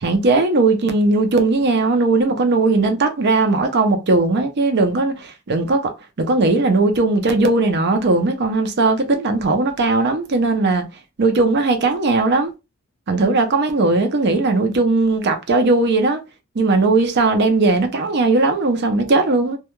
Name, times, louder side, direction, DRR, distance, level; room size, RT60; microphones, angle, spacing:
voice 1, 0.0-5.2 5.5-5.9 6.2-10.8 11.2-12.5 13.1-16.2 16.6-19.6, right 3 dB, 50° right, 0.5 m, -18 dB
2.3 x 2.2 x 2.9 m
head